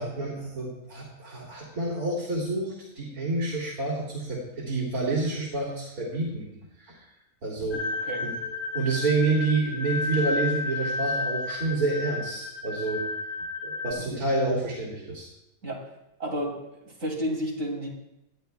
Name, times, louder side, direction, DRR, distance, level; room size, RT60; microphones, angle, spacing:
voice 1, 0.0-6.5 6.8-7.0 7.4-7.8 8.2-8.3 8.7-13.1 13.6-15.2, right 3 dB, 80° right, -5 dB, 2.9 m, -28 dB
sound 1, 7.7-13.9, left 3 dB, 40° left, 1.2 m, -32 dB
voice 2, 7.7-8.3 14.1-14.2 15.6-15.9 16.2-17.9, equal, 55° right, -2 dB, 3.2 m, -32 dB
19.0 x 11.5 x 2.3 m, 0.86 s
omnidirectional pair, 1.6 m